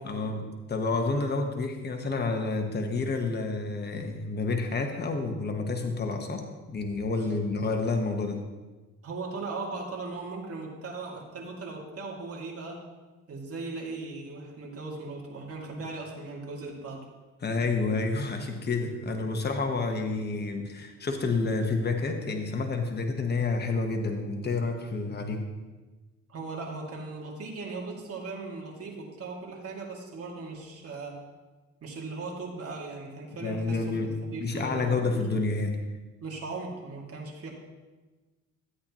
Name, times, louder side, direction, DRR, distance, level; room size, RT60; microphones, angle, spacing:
voice 1, 0.0-8.4 17.4-25.4 33.4-35.8, left 3 dB, 35° left, 4 dB, 1.2 m, -29 dB
voice 2, 9.0-12.8 13.3-17.0 26.3-31.2 31.8-35.2 36.2-37.5, right 3 dB, 50° right, -2 dB, 2.4 m, -38 dB
13.0 x 8.5 x 3.0 m, 1.2 s
cardioid pair, 90°, 30 cm